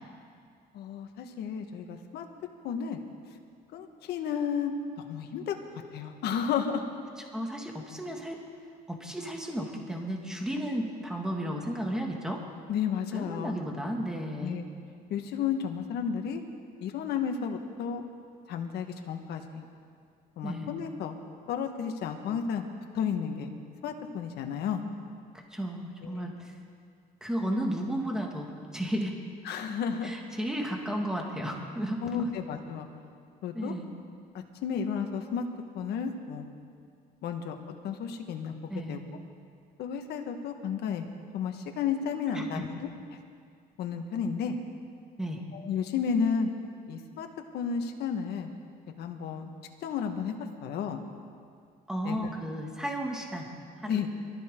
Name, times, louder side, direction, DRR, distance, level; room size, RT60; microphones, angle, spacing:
voice 1, 0.7-2.2 2.6-3.0 3.7-4.7 5.1-5.5 5.9-6.8 12.7-13.6 14.4-14.6 15.1-16.4 16.8-18.0 18.5-19.6 20.4-21.1 21.5-22.6 22.9-23.5 23.8-24.8 26.1-26.3 27.4-27.5 29.4-30.1 32.0-32.9 33.4-33.7 34.6-35.4 35.7-36.5 37.2-37.5 37.8-38.5 38.9-39.0 39.8-41.0 41.3-42.7 43.8-44.6 45.5-46.5 46.9-47.3 47.5-48.5 49.0-49.5 49.8-50.3 50.6-51.0 52.0-52.2 53.9-54.1, left 7 dB, 75° left, 5 dB, 1.6 m, -32 dB
voice 2, 7.3-8.4 8.9-12.4 13.1-14.6 20.4-20.7 25.5-26.3 27.2-29.1 30.0-32.3 33.5-33.9 38.7-39.0 42.3-42.6 45.2-45.4 51.9-53.5 53.8-54.1, equal, 5° right, 0 dB, 2.1 m, -33 dB
23.5 x 14.0 x 3.8 m, 2.2 s
cardioid pair, 110°, 17 cm